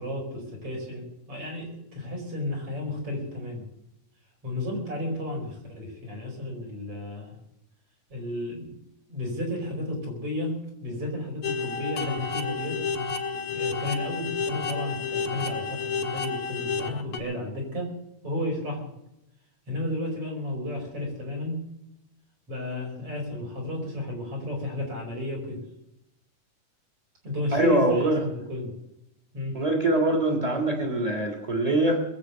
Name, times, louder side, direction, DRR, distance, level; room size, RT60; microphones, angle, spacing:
voice 1, 0.0-3.7 4.4-7.4 8.1-8.8 9.1-12.8 13.5-17.9 18.2-18.9 19.7-21.6 22.5-25.6 27.2-28.7 29.3-29.6, left 1 dB, 45° right, -1 dB, 6.0 m, -33 dB
sound 1, 11.4-17.2, left 5 dB, 50° left, 2.0 m, -30 dB
voice 2, 27.5-28.2 29.5-32.0, right 1 dB, 10° right, 3 dB, 2.7 m, -23 dB
21.0 x 8.4 x 6.7 m, 0.84 s
omnidirectional pair, 3.7 m